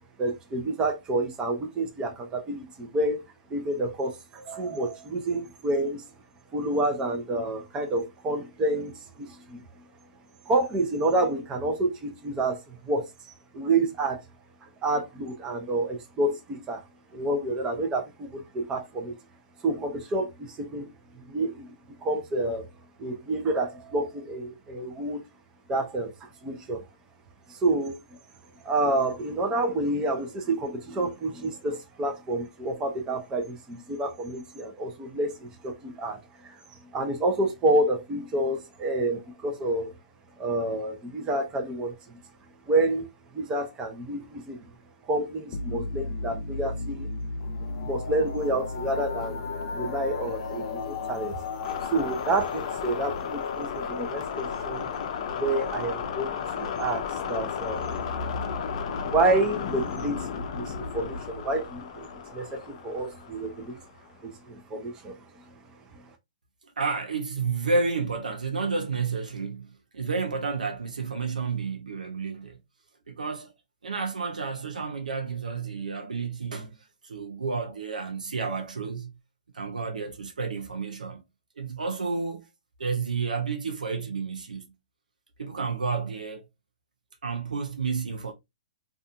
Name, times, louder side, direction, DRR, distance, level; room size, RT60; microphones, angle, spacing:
voice 1, 0.2-3.2 3.5-6.0 6.5-9.6 10.5-14.2 14.6-16.8 17.1-19.1 19.6-20.9 21.3-21.7 22.0-22.6 23.0-25.2 25.7-26.8 27.5-28.0 28.6-36.6 36.9-39.9 40.4-42.2 42.7-43.1 43.3-44.6 45.1-47.1 47.8-49.4 49.7-51.4 51.9-54.9 55.4-57.9 59.0-63.8 64.2-65.2, right 2 dB, 20° right, 0.6 m, -29 dB
sound 1, 45.5-64.0, left 5 dB, 50° left, 0.5 m, -33 dB
voice 2, 66.6-72.6 73.1-73.5 73.8-76.8 77.0-79.1 79.5-81.2 81.6-82.5 82.8-84.7 85.4-86.5 87.2-88.3, right 4 dB, 85° right, 0.6 m, -31 dB
2.5 x 2.4 x 2.4 m
hypercardioid pair, 135°, 4 cm